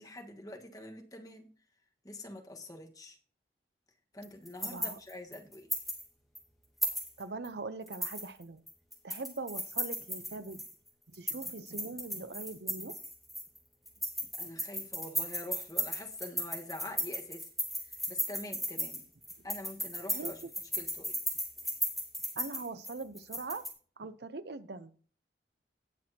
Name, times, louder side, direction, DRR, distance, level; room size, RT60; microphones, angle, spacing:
voice 1, 0.0-1.5 2.0-3.2 4.1-5.7 14.4-17.4 17.8-19.0 19.4-20.4 20.7-21.2, left 1 dB, 20° left, 1.4 m, -45 dB
sound 1, 4.2-6.0 6.3-6.4 6.8-7.5 7.9-10.7 11.1-13.6 13.9-23.7, equal, ahead, 2.4 m, -36 dB
voice 2, 4.6-5.0 7.2-8.6 9.0-10.6 11.1-13.0 20.1-20.3 22.4-23.6 24.0-24.9, right 3 dB, 70° right, 0.7 m, -41 dB
18.0 x 6.2 x 2.8 m
head